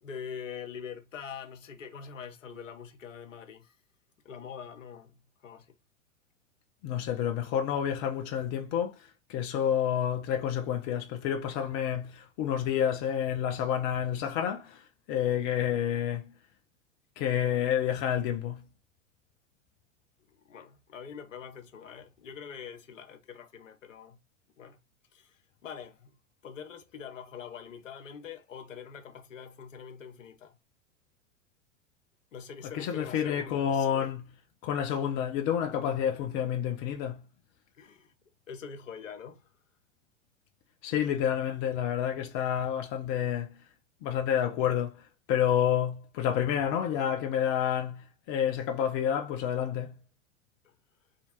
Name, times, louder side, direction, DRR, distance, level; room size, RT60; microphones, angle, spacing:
voice 1, 0.0-3.8 4.2-5.7 20.3-24.2 24.6-24.8 25.1-26.2 26.4-30.6 32.3-34.1 37.8-38.1 38.5-39.5 50.6-50.7, left 7 dB, 70° left, 0.8 m, -44 dB
voice 2, 6.8-9.0 9.3-14.8 15.1-16.3 17.2-18.7 32.7-34.2 34.6-37.2 40.8-43.6 44.0-45.0 45.3-49.9, left 9 dB, 25° left, 0.3 m, -29 dB
3.3 x 2.8 x 2.8 m
figure-of-eight pair, 95°, 40 cm